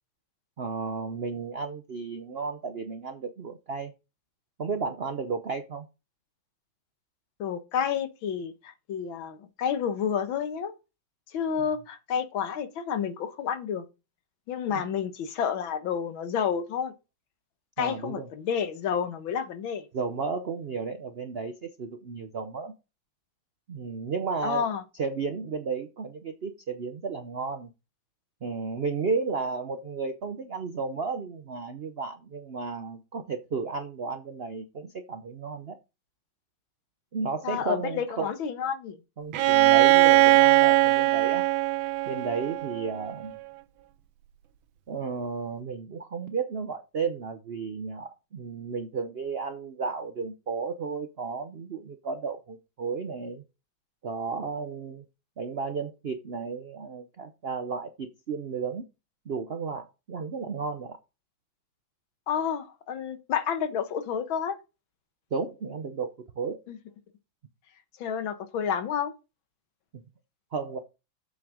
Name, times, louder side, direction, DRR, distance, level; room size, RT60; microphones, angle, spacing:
voice 1, 0.6-3.9 4.6-5.9 11.6-11.7 14.7-14.9 17.8-18.3 19.9-22.7 23.7-24.7 25.0-27.7 28.4-35.8 37.1-38.3 39.2-41.4 42.1-43.4 44.9-53.4 54.0-55.0 55.4-58.8 59.3-61.0 65.3-66.6 69.9-70.0 70.5-70.8, right 5 dB, 70° right, 0.5 m, -33 dB
voice 2, 7.4-10.7 11.3-13.9 14.5-16.9 17.8-19.8 24.4-24.8 37.4-39.0 62.3-64.6 66.7-66.8 68.0-69.1, left 7 dB, 90° left, 1.9 m, -30 dB
Bowed string instrument, 39.3-43.1, right 18 dB, 90° right, 1.5 m, -20 dB
7.8 x 6.1 x 5.0 m
omnidirectional pair, 2.1 m